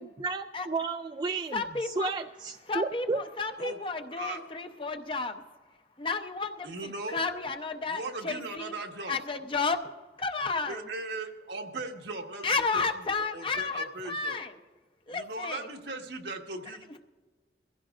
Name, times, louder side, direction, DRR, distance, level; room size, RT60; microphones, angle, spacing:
voice 1, 0.0-3.2, right 3 dB, 25° right, 5 dB, 0.3 m, -33 dB
voice 2, 1.5-2.1 2.7-5.4 6.0-8.7 9.1-9.8 10.2-10.8 12.4-14.5 15.1-15.6, left 4 dB, 30° left, 6 dB, 0.7 m, -32 dB
voice 3, 6.6-7.2 7.8-9.2 10.7-14.4 15.1-16.9, right 2 dB, 80° right, 2 dB, 1.5 m, -38 dB
22.5 x 16.0 x 2.5 m, 1.4 s
head